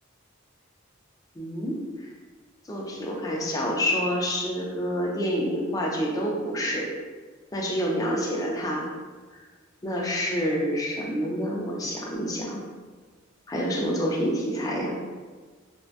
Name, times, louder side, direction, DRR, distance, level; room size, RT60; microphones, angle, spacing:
voice 1, 1.4-1.8 2.7-6.9 7.5-8.9 9.8-12.6 13.5-15.0, equal, 15° left, -2 dB, 0.4 m, -27 dB
2.6 x 2.1 x 2.3 m, 1.4 s
head